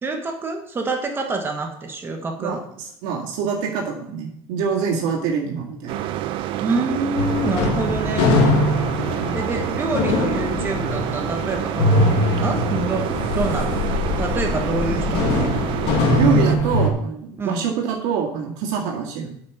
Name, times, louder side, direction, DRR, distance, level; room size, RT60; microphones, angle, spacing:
voice 1, 0.0-2.6 6.6-8.4 9.3-15.7 17.4-17.6, right 3 dB, 20° right, 3 dB, 1.4 m, -27 dB
voice 2, 2.4-6.1 9.2-9.5 16.2-19.3, right 6 dB, 80° right, -1 dB, 2.0 m, -25 dB
sound 1, 5.9-16.6, right 13 dB, 55° right, 0.6 m, -28 dB
sound 2, 7.1-16.9, left 2 dB, 60° left, 2.0 m, -22 dB
8.6 x 5.8 x 5.9 m, 0.71 s
cardioid pair, 145°, 10 cm